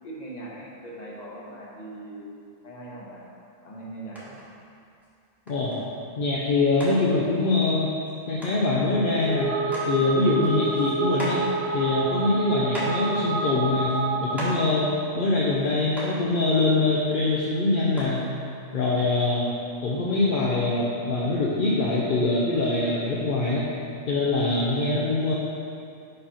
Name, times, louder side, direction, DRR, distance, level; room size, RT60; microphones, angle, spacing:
voice 1, 0.0-3.2 3.6-4.3, right 1 dB, 35° left, -5 dB, 1.2 m, -40 dB
sound 1, 4.2-4.5 5.0-5.1 5.5-5.8 6.4-6.5 6.8-6.9 8.1-8.2 8.4-8.6 9.2-9.3 9.6-9.9 10.3-11.5 12.2-12.3 12.7-13.1 13.8-14.0 14.3-14.6 15.6-15.7 16.0-16.2 17.3-17.4 18.0-18.2 19.1-19.2, equal, ahead, 1.3 m, -37 dB
voice 2, 6.2-7.9 8.3-9.6 9.9-11.4 11.7-14.9 15.1-18.3 18.7-19.5 19.8-23.7 24.1-25.3, left 2 dB, 50° left, -6 dB, 0.7 m, -23 dB
sound 2, 9.1-14.9, right 3 dB, 65° right, 0.7 m, -28 dB
5.4 x 4.3 x 5.6 m, 2.5 s
omnidirectional pair, 1.4 m